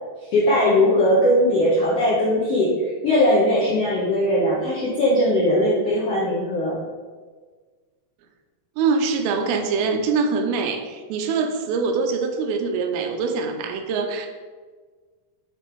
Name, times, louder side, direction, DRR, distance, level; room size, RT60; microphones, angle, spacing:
voice 1, 0.3-6.8, left 1 dB, 75° left, -7 dB, 1.4 m, -19 dB
voice 2, 8.8-14.3, right 4 dB, 90° right, 5 dB, 2.6 m, -24 dB
8.0 x 3.3 x 4.5 m, 1.5 s
omnidirectional pair, 4.3 m